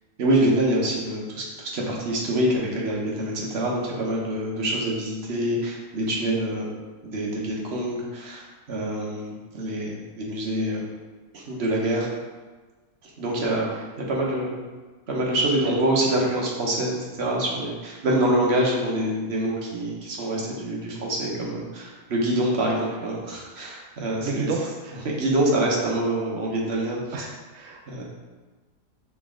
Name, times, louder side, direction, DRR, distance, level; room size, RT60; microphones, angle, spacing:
voice 1, 0.2-6.7 7.0-10.8 11.3-12.1 13.2-13.7 14.1-14.6 15.1-24.5 25.0-27.3 27.9-28.0, right 1 dB, 50° right, -3 dB, 0.9 m, -25 dB
voice 2, 24.2-25.0 27.1-27.8, right 4 dB, 85° right, 1 dB, 0.6 m, -31 dB
4.1 x 3.4 x 3.7 m, 1.3 s
omnidirectional pair, 1.7 m